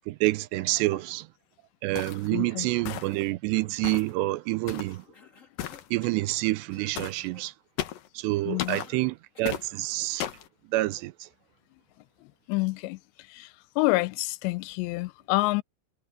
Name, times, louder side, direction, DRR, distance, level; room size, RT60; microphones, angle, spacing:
voice 1, 0.1-1.3 1.8-5.0 5.9-7.5 8.2-10.3 10.7-11.1, right 19 dB, 85° right, 2.8 m, -28 dB
sound 1, 2.0-2.3 2.9-3.3 3.8-4.1 4.7-5.0 5.6-5.9 7.0-7.2 7.8-8.1 8.6-8.9 9.5-9.7 10.2-10.5, left 11 dB, 65° left, 2.7 m, -35 dB
voice 2, 2.3-2.7 8.5-8.8 12.5-13.0 13.3-13.5 13.8-15.6, left 22 dB, 85° left, 2.8 m, -27 dB
Cough, 5.1-6.3 6.7-7.0 7.2-7.5 8.8-9.7, left 5 dB, 30° left, 1.6 m, -54 dB
omnidirectional pair, 5.0 m